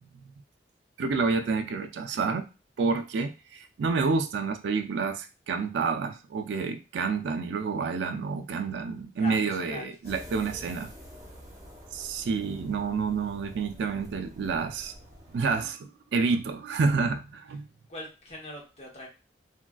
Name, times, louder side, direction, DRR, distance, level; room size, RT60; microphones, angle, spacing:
voice 1, 1.0-2.5 2.8-10.9 11.9-14.9 15.3-17.7, right 4 dB, 75° right, 6 dB, 0.3 m, -29 dB
voice 2, 9.2-10.2 17.9-19.1, left 2 dB, 35° left, -2 dB, 0.9 m, -42 dB
sound 1, 10.0-15.6, equal, 20° right, 0.8 m, -47 dB
3.5 x 2.3 x 2.2 m, 0.31 s
head